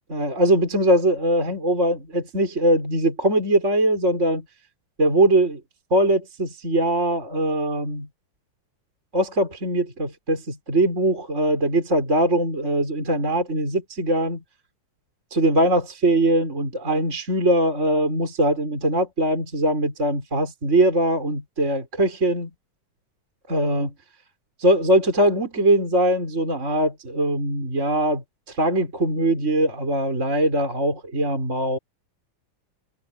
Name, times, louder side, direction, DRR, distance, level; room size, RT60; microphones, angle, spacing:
voice 1, 0.1-4.5 5.0-5.6 5.9-8.1 9.1-14.4 15.3-22.5 23.5-23.9 24.6-31.8, right 1 dB, 20° right, 5.2 m, -21 dB
omnidirectional pair, 3.8 m